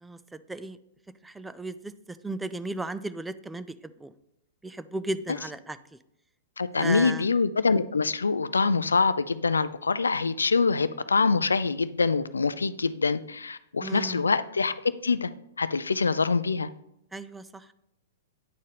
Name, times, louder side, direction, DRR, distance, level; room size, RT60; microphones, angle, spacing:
voice 1, 0.0-0.8 1.2-3.7 4.0-4.1 4.6-5.8 6.8-7.2 13.8-14.3 17.1-17.7, right 2 dB, 5° right, 13 dB, 0.3 m, -35 dB
voice 2, 6.6-14.7 15.0-15.3 15.6-16.7, left 4 dB, 75° left, 15 dB, 0.3 m, -25 dB
9.3 x 4.3 x 3.4 m, 0.82 s
figure-of-eight pair, 110°, 0 cm